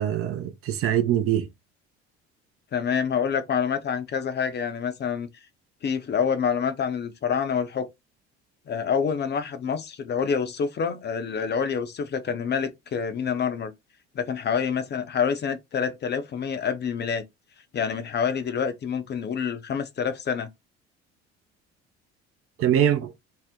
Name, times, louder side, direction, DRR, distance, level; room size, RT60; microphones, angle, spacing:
voice 1, 0.0-1.5 22.6-23.1, right 10 dB, 40° right, 0.5 m, -23 dB
voice 2, 2.7-5.3 5.8-7.9 8.7-13.7 14.1-17.2 17.7-20.5, left 7 dB, 30° left, 0.6 m, -27 dB
2.7 x 2.0 x 3.5 m
figure-of-eight pair, 55°, 35 cm